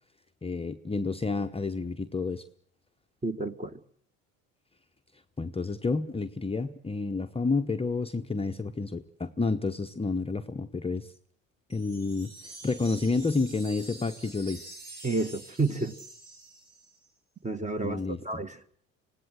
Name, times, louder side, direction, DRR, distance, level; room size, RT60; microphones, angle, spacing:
voice 1, 0.4-2.4 5.4-11.1 11.7-14.7 17.8-18.2, left 3 dB, 15° left, 6 dB, 0.9 m, -30 dB
voice 2, 3.2-3.8 15.0-16.0 17.4-18.6, right 3 dB, 20° right, 10 dB, 1.7 m, -30 dB
sound 1, 11.7-17.1, right 2 dB, 65° right, 5.1 m, -47 dB
25.5 x 17.5 x 8.0 m, 0.63 s
hypercardioid pair, 60°, 39 cm